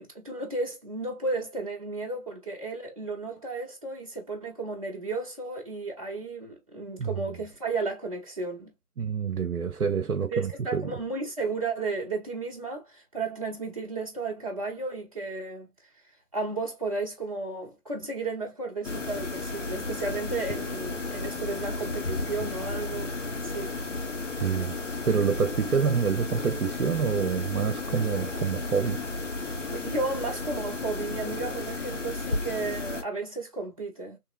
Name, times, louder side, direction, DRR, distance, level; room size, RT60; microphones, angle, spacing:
voice 1, 0.0-8.7 10.3-15.7 16.3-23.1 23.4-23.8 29.7-34.2, right 3 dB, 25° right, 0.9 m, -33 dB
voice 2, 9.0-10.9 24.4-24.7 25.1-29.0, right 6 dB, 70° right, 0.7 m, -27 dB
sound 1, 18.8-33.0, left 3 dB, 55° left, 0.9 m, -33 dB
3.7 x 2.9 x 2.4 m
figure-of-eight pair, 160°, 45 cm